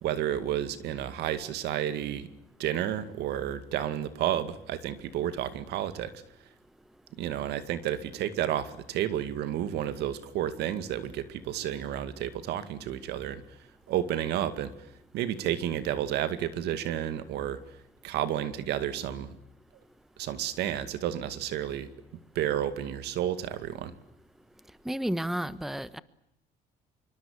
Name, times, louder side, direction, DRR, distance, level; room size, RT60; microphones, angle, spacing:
voice 1, 0.0-2.3 2.6-6.1 7.2-13.4 13.9-14.9 15.1-17.6 18.0-19.3 20.2-21.9 22.4-23.9, right 11 dB, 80° right, 2.2 m, -31 dB
voice 2, 24.8-26.0, right 1 dB, ahead, 1.1 m, -31 dB
26.0 x 24.0 x 8.5 m
cardioid pair, 110°, 17 cm